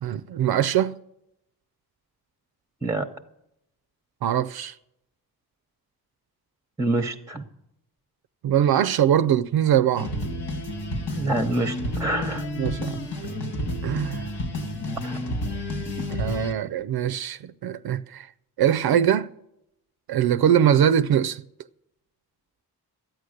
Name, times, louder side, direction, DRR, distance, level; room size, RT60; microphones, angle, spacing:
voice 1, 0.0-1.0 4.2-4.7 8.4-10.1 12.6-13.0 13.8-14.3 16.2-18.3 18.6-19.3 20.1-21.4, right 10 dB, 65° right, 0.5 m, -22 dB
voice 2, 6.8-7.4 11.1-12.5 15.0-15.2, right 2 dB, 10° right, 0.9 m, -26 dB
sound 1, 9.9-16.5, left 1 dB, 80° left, 2.4 m, -30 dB
13.0 x 9.1 x 6.5 m
cardioid pair, 80°, 39 cm